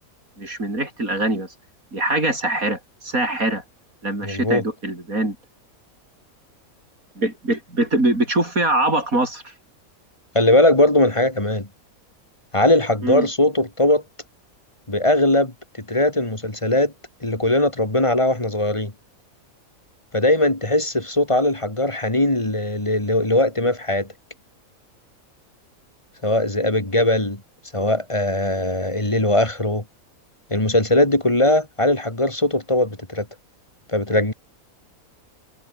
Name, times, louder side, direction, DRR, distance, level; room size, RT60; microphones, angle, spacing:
voice 1, 0.4-1.5 1.9-3.6 4.0-5.4 7.2-9.5 13.0-13.3, right 2 dB, 70° right, 8.2 m, -23 dB
voice 2, 4.2-4.6 10.3-11.7 12.5-14.0 14.9-15.5 15.9-16.9 17.2-18.9 20.1-24.1 26.2-27.4 27.7-29.8 30.5-33.3 33.9-34.3, left 1 dB, 20° left, 2.8 m, -20 dB
omnidirectional pair, 1.5 m